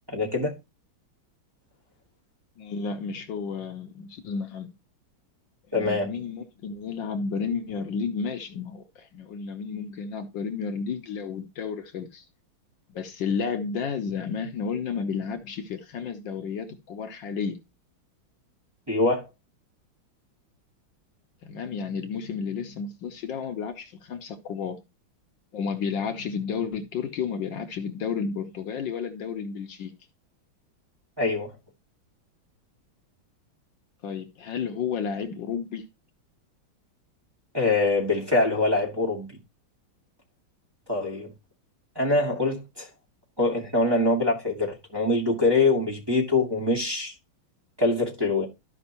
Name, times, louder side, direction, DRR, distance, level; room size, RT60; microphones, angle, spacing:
voice 1, 0.1-0.5 5.7-6.1 18.9-19.3 31.2-31.5 37.5-39.3 40.9-41.3 42.0-42.9 43.4-47.1 47.8-48.5, left 2 dB, 10° right, 1.8 m, -24 dB
voice 2, 2.6-4.7 5.7-12.2 12.9-17.6 21.4-24.8 25.5-29.9 34.0-35.9, left 6 dB, 70° left, 1.5 m, -32 dB
13.5 x 5.3 x 2.9 m
omnidirectional pair, 2.2 m